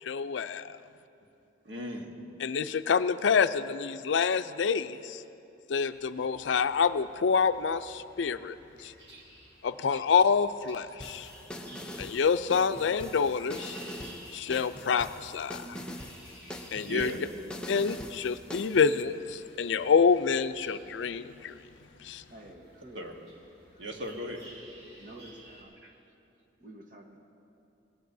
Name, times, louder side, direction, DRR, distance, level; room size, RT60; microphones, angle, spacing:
voice 1, 0.0-0.8 2.4-5.2 5.7-8.6 8.8-8.9 9.6-11.3 12.0-13.8 14.3-15.8 16.7-17.1 17.7-21.5 22.0-22.2, left 6 dB, 80° left, 12 dB, 0.4 m, -27 dB
voice 2, 1.6-2.1 9.1-9.2 15.7-15.8 16.8-17.3 22.9-23.1 23.8-24.4 25.8-25.9, equal, 85° right, 2 dB, 1.4 m, -38 dB
sound 1, 5.9-25.6, right 1 dB, 65° right, 4.1 m, -54 dB
sound 2, 11.0-19.0, equal, 5° left, 0.6 m, -43 dB
voice 3, 22.3-23.1 25.0-25.8 26.6-27.2, right 1 dB, 45° right, 2 dB, 1.3 m, -49 dB
20.5 x 18.0 x 2.7 m, 2.7 s
head